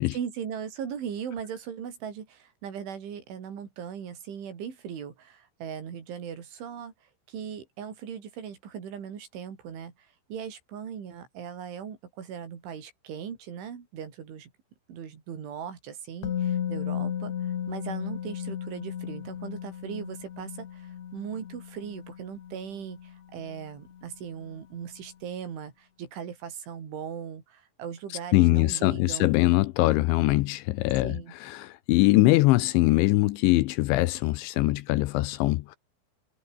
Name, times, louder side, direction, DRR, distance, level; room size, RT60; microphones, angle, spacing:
voice 1, 0.0-6.9 7.3-14.5 14.9-29.3 31.0-31.4, right 8 dB, 70° right, 6.2 m, -39 dB
Musical instrument, 16.2-24.1 24.4-24.6, left 9 dB, 60° left, 1.9 m, -35 dB
voice 2, 28.3-35.8, left 19 dB, 85° left, 2.9 m, -22 dB
omnidirectional pair, 5.7 m